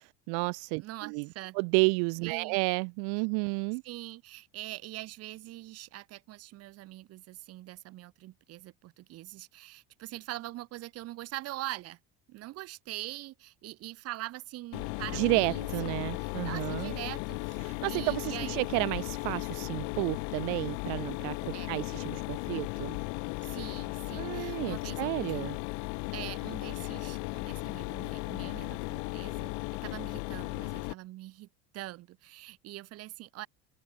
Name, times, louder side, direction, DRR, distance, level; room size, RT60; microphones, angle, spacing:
voice 1, 0.0-1.3 1.5-3.8 15.1-16.9 17.6-23.0 24.1-25.6, right 40 dB or more, 80° right, 1.0 m, -31 dB
voice 2, 0.8-1.6 2.2-2.6 3.8-12.0 12.3-17.6 17.9-18.6 21.5-21.9 23.4-25.5 26.1-29.5 29.8-31.5 31.7-33.5, right 17 dB, 50° right, 3.2 m, -43 dB
Mechanisms, 14.7-30.9, left 34 dB, 75° left, 1.4 m, -36 dB
open air
cardioid pair, 155°, 31 cm